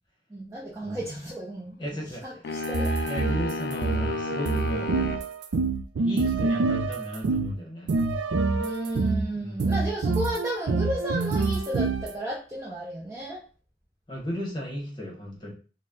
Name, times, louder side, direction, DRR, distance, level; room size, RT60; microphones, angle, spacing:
voice 1, 0.3-1.7 2.2-2.9 8.6-13.4, right 1 dB, 15° right, -5 dB, 0.6 m, -33 dB
voice 2, 1.8-2.2 3.1-4.9 6.0-8.0 9.3-9.7 14.1-15.5, equal, 25° left, -1 dB, 1.0 m, -35 dB
sound 1, 2.4-5.3, left 3 dB, 60° left, 0.3 m, -33 dB
sound 2, 2.6-7.5 7.9-9.3 9.6-12.1, right 3 dB, 75° right, 0.4 m, -26 dB
4.0 x 2.1 x 3.6 m, 0.37 s
head